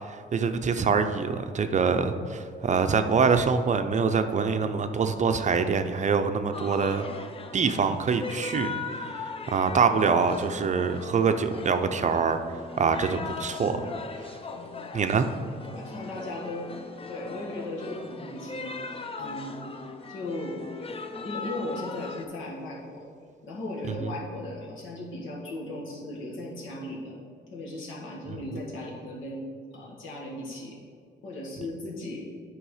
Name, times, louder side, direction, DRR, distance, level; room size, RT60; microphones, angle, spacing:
voice 1, 0.1-7.1 7.5-13.8 14.9-15.2, right 5 dB, 35° right, 8 dB, 0.5 m, -25 dB
sound 1, 6.5-22.2, left 4 dB, 30° left, 0.6 m, -39 dB
voice 2, 15.7-16.7 17.1-19.6 20.1-20.6 21.2-23.1 23.4-27.2 27.5-30.8 31.2-32.2, left 1 dB, 80° left, -4 dB, 2.0 m, -37 dB
9.0 x 4.7 x 4.9 m, 2.1 s
cardioid pair, 90°, 20 cm